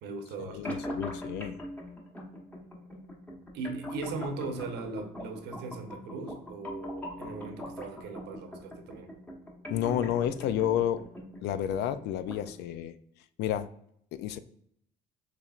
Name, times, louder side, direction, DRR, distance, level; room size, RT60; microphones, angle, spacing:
voice 1, 0.0-0.7 3.5-9.1, right 3 dB, 80° right, 6 dB, 0.9 m, -39 dB
voice 2, 0.5-1.5 9.7-11.0 11.4-12.9 13.4-13.7 14.1-14.4, left 10 dB, 80° left, 13 dB, 0.4 m, -30 dB
sound 1, 0.6-12.6, equal, 10° left, 1.1 m, -42 dB
6.8 x 3.2 x 2.4 m, 0.69 s
cardioid pair, 110°, 17 cm